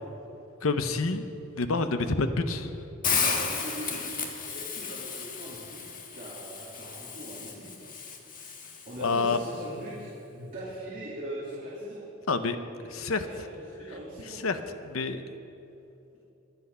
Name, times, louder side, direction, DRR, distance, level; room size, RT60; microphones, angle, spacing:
voice 1, 0.6-1.3 1.5-2.9 9.0-9.4 12.3-12.6 12.9-13.3 14.3-15.2, left 3 dB, 70° left, 9 dB, 0.8 m, -28 dB
Hiss, 3.0-9.1, left 5 dB, 40° left, 1.4 m, -33 dB
voice 2, 3.1-5.8 6.1-7.7 8.8-12.0 12.8-14.4, right 1 dB, 40° right, -8 dB, 2.9 m, -41 dB
23.5 x 8.3 x 5.5 m, 2.9 s
head